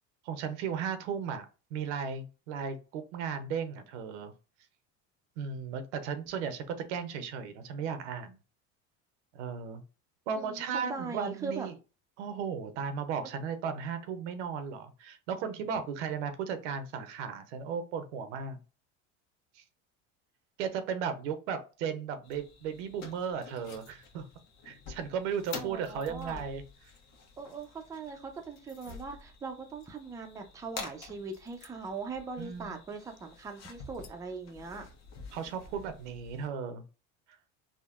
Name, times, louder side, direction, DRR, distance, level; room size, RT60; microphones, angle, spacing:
voice 1, 0.3-1.5 1.7-4.3 5.4-8.4 9.3-9.8 10.3-11.7 12.2-18.6 19.6-19.7 20.6-24.3 24.6-26.6 32.4-32.8 35.3-36.8, right 6 dB, 90° right, 9 dB, 0.7 m, -35 dB
voice 2, 10.4-11.7 25.5-26.4 27.4-34.9, right 4 dB, 10° right, 4 dB, 0.4 m, -40 dB
sound 1, 22.2-36.5, left 4 dB, 50° left, 0.9 m, -48 dB
3.6 x 2.1 x 2.4 m, 0.32 s
supercardioid pair, 110°, 35 cm